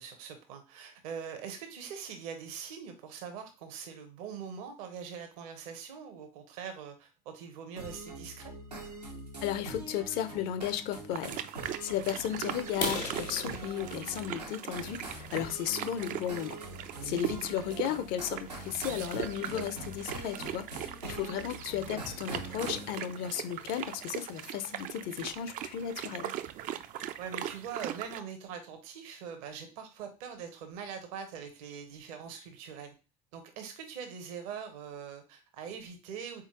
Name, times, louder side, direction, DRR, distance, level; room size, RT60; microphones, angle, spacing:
voice 1, 0.0-8.5 17.0-17.2 27.2-32.9 33.3-36.4, right 7 dB, 60° right, 0.9 m, -43 dB
sound 1, 7.8-22.9, right 2 dB, 90° right, 1.0 m, -44 dB
voice 2, 9.4-16.6 17.0-26.3, left 10 dB, 50° left, 0.5 m, -35 dB
sound 2, 11.1-28.2, right 11 dB, 40° right, 0.4 m, -40 dB
sound 3, 12.7-16.5 17.0-17.2 17.6-17.7 18.2-18.3 18.6-18.7 19.2-19.3 19.5-20.0, left 2 dB, 85° left, 1.4 m, -40 dB
4.2 x 3.6 x 2.9 m
figure-of-eight pair, 65°, 20 cm